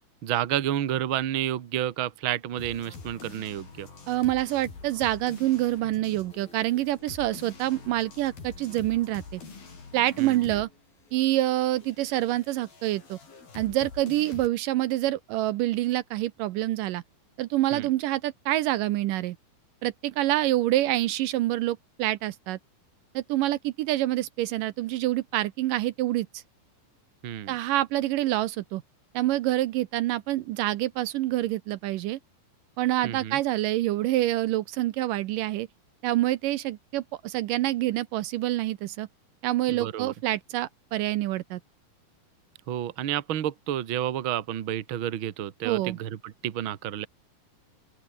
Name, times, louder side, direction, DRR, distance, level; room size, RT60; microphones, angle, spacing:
voice 1, 0.2-3.9 10.2-10.6 17.7-17.9 27.2-27.5 33.0-33.4 39.7-40.1 42.7-47.1, right 11 dB, 60° right, 1.4 m, -30 dB
sound 1, 2.6-10.8 11.0-14.5, left 4 dB, 75° left, 8.9 m, -46 dB
voice 2, 4.1-9.4 9.9-10.7 11.1-13.2 13.6-17.0 17.4-19.4 19.8-22.6 23.2-26.4 27.5-28.8 29.1-32.2 32.8-35.7 36.0-39.1 39.4-41.6 45.6-46.0, right 15 dB, 75° right, 2.2 m, -27 dB
open air
omnidirectional pair, 4.2 m